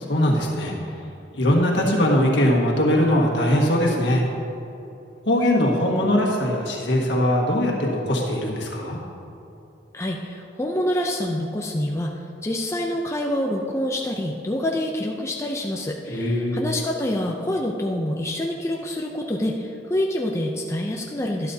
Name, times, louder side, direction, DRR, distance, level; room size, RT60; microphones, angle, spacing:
voice 1, 0.1-0.7 1.3-4.2 5.2-9.0 16.1-16.6, left 1 dB, 65° left, -2 dB, 1.7 m, -21 dB
voice 2, 9.9-21.5, left 1 dB, 15° left, -1 dB, 0.5 m, -26 dB
12.0 x 11.5 x 2.8 m, 2.8 s
head